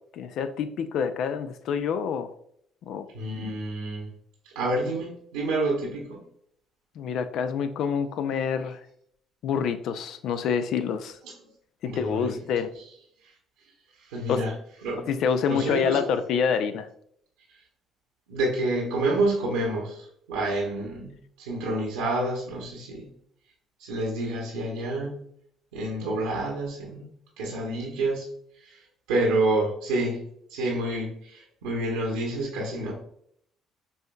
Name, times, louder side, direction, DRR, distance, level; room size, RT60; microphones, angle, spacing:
voice 1, 0.1-2.3 2.8-3.1 7.0-8.8 9.4-11.2 11.8-12.7 14.3-14.5 15.0-16.9, left 7 dB, 65° left, 10 dB, 0.3 m, -27 dB
voice 2, 3.1-4.1 4.5-6.2 11.8-12.4 14.1-14.5 14.8-15.1 15.5-16.0 18.3-23.1 23.8-25.2 25.7-27.1 27.4-28.3 28.6-28.8 29.1-30.2 30.5-32.9, right 2 dB, 85° right, -3 dB, 0.9 m, -28 dB
5.4 x 2.7 x 2.2 m, 0.67 s
hypercardioid pair, 60°, 0 cm